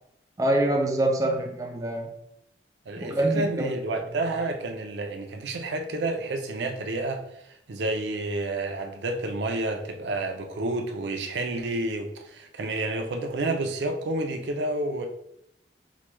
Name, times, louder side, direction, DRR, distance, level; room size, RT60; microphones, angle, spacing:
voice 1, 0.4-2.1 3.0-3.7, right 1 dB, 20° right, 2 dB, 0.3 m, -25 dB
voice 2, 2.9-15.1, right 2 dB, 75° right, 5 dB, 0.5 m, -30 dB
4.7 x 2.2 x 3.0 m, 0.79 s
head